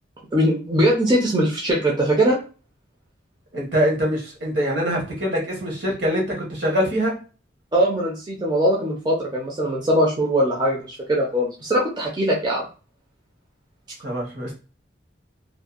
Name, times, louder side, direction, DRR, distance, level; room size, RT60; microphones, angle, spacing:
voice 1, 0.3-2.4 7.7-12.6, right 1 dB, 25° right, -2 dB, 0.5 m, -21 dB
voice 2, 3.5-7.2 14.0-14.5, equal, 70° right, -2 dB, 1.1 m, -24 dB
2.6 x 2.2 x 2.4 m, 0.35 s
head